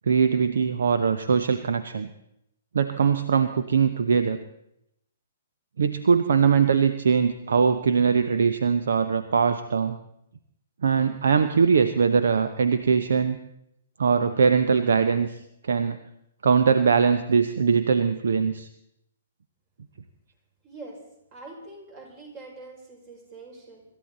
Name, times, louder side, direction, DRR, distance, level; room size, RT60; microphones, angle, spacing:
voice 1, 0.1-2.1 2.7-4.4 5.8-10.0 10.8-13.4 14.0-16.0 16.4-18.7, right 6 dB, 60° right, 10 dB, 0.9 m, -21 dB
voice 2, 20.6-21.0 21.3-23.8, right 3 dB, 35° right, 0 dB, 5.9 m, -44 dB
26.0 x 13.5 x 4.1 m, 0.79 s
figure-of-eight pair, 120°, 0 cm